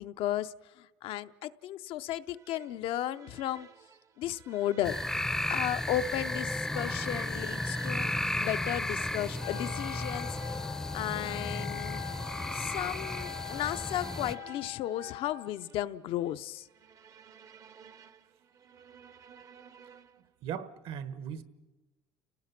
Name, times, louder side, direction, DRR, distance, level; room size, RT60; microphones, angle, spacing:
voice 1, 0.0-3.7 4.2-5.2 5.5-12.0 12.5-16.7, left 12 dB, 65° left, 11 dB, 0.6 m, -35 dB
sound 1, 2.3-20.3, right 7 dB, 35° right, 0.8 m, -53 dB
sound 2, 4.8-14.3, left 1 dB, 5° left, 0.6 m, -34 dB
Wind instrument woodwind instrument, 9.4-15.6, left 17 dB, 90° left, 1.0 m, -43 dB
voice 2, 20.4-21.4, right 8 dB, 65° right, 13 dB, 1.4 m, -38 dB
29.5 x 18.0 x 5.9 m, 1.1 s
cardioid pair, 135°, 10 cm